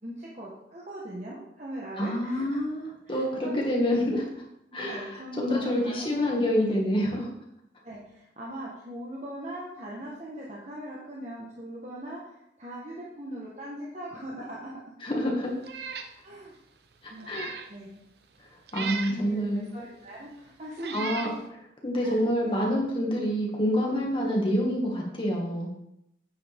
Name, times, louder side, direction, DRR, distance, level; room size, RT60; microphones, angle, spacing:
voice 1, 0.0-2.5 3.0-3.6 4.7-6.9 7.8-14.7 16.2-16.5 17.1-17.4 17.7-18.0 18.8-21.1 22.0-22.7, right 1 dB, 40° right, -5 dB, 1.4 m, -40 dB
voice 2, 2.0-4.2 4.7-7.3 15.0-15.5 17.0-17.5 18.7-19.7 20.9-21.3 21.8-25.7, equal, 30° left, -2 dB, 2.1 m, -27 dB
Meow, 15.6-16.1 16.6-16.7 17.2-17.7 18.7-19.2 20.1-20.2 20.8-21.4, right 6 dB, 65° right, 0.8 m, -37 dB
9.2 x 7.8 x 3.6 m, 0.81 s
head